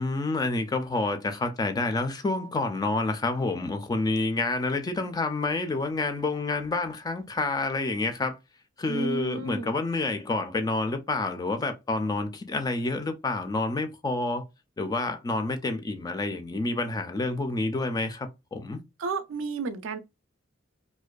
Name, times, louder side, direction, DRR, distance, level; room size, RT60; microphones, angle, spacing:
voice 1, 0.0-8.4 8.8-14.4 14.8-18.8, left 2 dB, 20° left, 0.3 m, -28 dB
voice 2, 8.9-9.7 19.0-20.0, right 3 dB, 65° right, 0.4 m, -31 dB
2.5 x 2.2 x 2.2 m
head